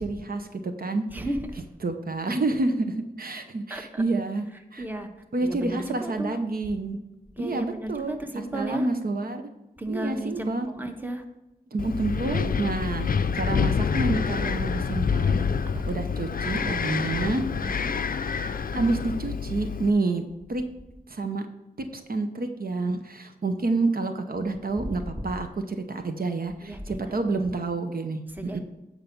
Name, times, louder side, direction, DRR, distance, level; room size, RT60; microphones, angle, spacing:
voice 1, 0.0-1.0 1.8-4.5 4.7-4.8 5.3-7.0 7.4-9.4 9.9-10.7 11.7-13.1 13.3-15.4 15.9-17.5 18.7-20.2 20.5-20.6 21.1-21.5 21.8-28.6, right 3 dB, 65° right, 6 dB, 0.8 m, -28 dB
voice 2, 1.1-1.6 3.7-4.0 4.8-5.1 5.4-6.4 7.4-8.9 9.8-11.2 15.7-16.0 17.5-17.9 24.8-24.9 26.6-27.1 28.3-28.6, right 1 dB, 10° right, 5 dB, 1.0 m, -34 dB
Wind, 11.8-19.9, left 6 dB, 60° left, 0.4 m, -27 dB
9.0 x 4.7 x 5.2 m, 0.95 s
wide cardioid pair, 55°, 16 cm